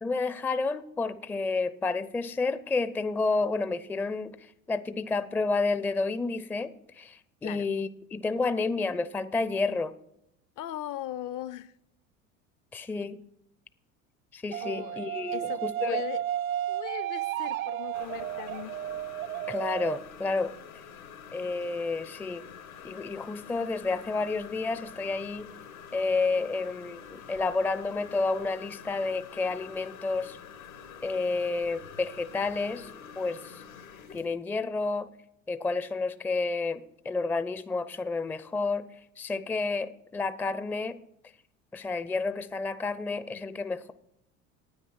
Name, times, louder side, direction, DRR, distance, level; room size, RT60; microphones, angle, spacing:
voice 1, 0.0-9.9 12.7-13.2 14.3-16.0 19.5-20.5 21.3-22.4 22.8-25.5 25.9-30.4 31.0-32.9 33.2-33.5 34.1-35.1 35.5-38.9 39.2-41.0 41.7-43.9, left 3 dB, 5° left, 14 dB, 0.4 m, -30 dB
voice 2, 10.6-11.7 14.6-15.0 15.3-16.2 16.7-18.8, left 13 dB, 50° left, 18 dB, 0.6 m, -38 dB
sound 1, 14.5-20.0, right 12 dB, 85° right, 0.6 m, -33 dB
sound 2, 17.9-34.3, left 7 dB, 85° left, 1.9 m, -47 dB
9.5 x 9.0 x 5.8 m, 0.78 s
hypercardioid pair, 75°, 40 cm